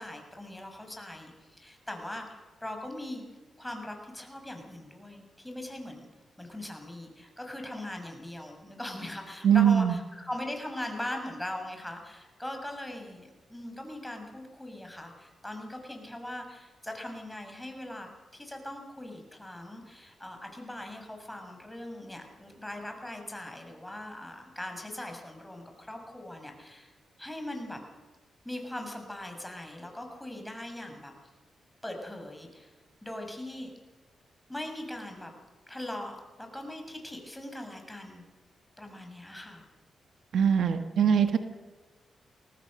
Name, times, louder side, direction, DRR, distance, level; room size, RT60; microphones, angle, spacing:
voice 1, 0.0-3.2 3.6-6.1 6.4-26.9 27.2-27.8 28.4-31.1 31.8-32.7 33.0-33.7 34.5-35.3 35.7-38.2 38.8-39.6, left 1 dB, 10° left, 3 dB, 6.6 m, -40 dB
voice 2, 9.4-10.0 40.3-41.4, right 8 dB, 75° right, 8 dB, 1.5 m, -22 dB
23.0 x 18.0 x 6.5 m, 1.3 s
supercardioid pair, 50°, 0 cm